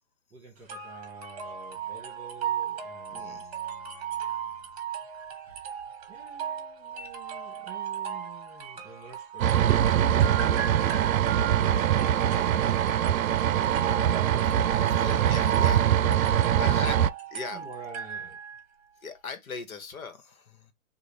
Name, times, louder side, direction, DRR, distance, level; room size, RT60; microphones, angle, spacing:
voice 1, 0.3-4.7 5.4-5.8 6.1-14.3 17.5-18.4, right 3 dB, 5° right, 1.6 m, -49 dB
sound 1, 0.7-18.6, right 8 dB, 30° right, 0.9 m, -36 dB
voice 2, 3.1-3.6 12.3-12.5 14.4-14.6 14.9-15.9 16.6-17.0 17.3-17.6 19.0-20.7, left 5 dB, 90° left, 1.2 m, -39 dB
sound 2, 9.4-17.1, right 10 dB, 85° right, 0.5 m, -23 dB
4.1 x 2.4 x 3.3 m
hypercardioid pair, 165°, 41 cm